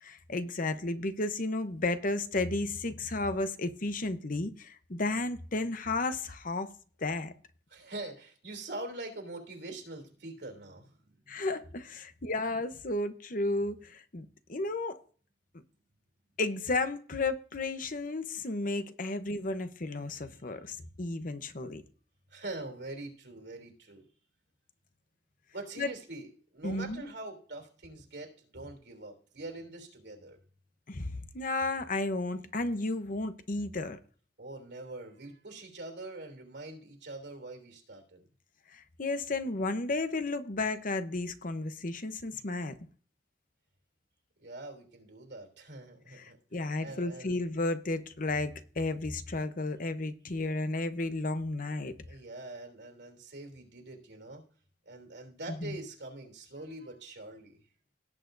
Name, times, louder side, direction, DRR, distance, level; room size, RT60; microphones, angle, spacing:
voice 1, 0.0-6.7 7.0-7.3 11.3-15.0 16.4-21.8 25.8-25.9 26.6-27.1 30.9-34.0 38.7-42.8 46.2-51.9 55.6-55.8, left 2 dB, 50° left, 0.9 m, -33 dB
voice 2, 7.7-11.5 20.3-20.4 20.8-20.9 22.3-24.0 25.5-30.4 34.4-38.2 44.4-47.3 52.1-54.4 54.8-57.6, right 2 dB, 75° right, 3.3 m, -44 dB
18.0 x 8.2 x 2.7 m
head